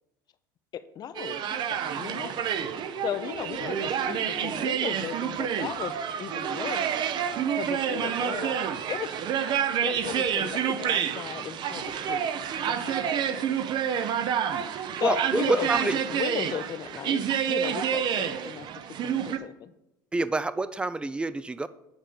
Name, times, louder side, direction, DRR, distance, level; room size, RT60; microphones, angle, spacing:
voice 1, 0.7-2.3 2.7-6.9 7.5-9.2 9.8-12.2 12.7-13.6 14.7-17.2 17.5-19.7, left 9 dB, 40° left, 13 dB, 0.6 m, -36 dB
sound 1, 1.1-19.4, right 8 dB, 45° right, 0.7 m, -29 dB
voice 2, 15.0-15.9 20.1-21.7, right 3 dB, 10° right, 15 dB, 0.4 m, -27 dB
8.9 x 3.7 x 6.7 m, 0.88 s
hypercardioid pair, 90°, 11 cm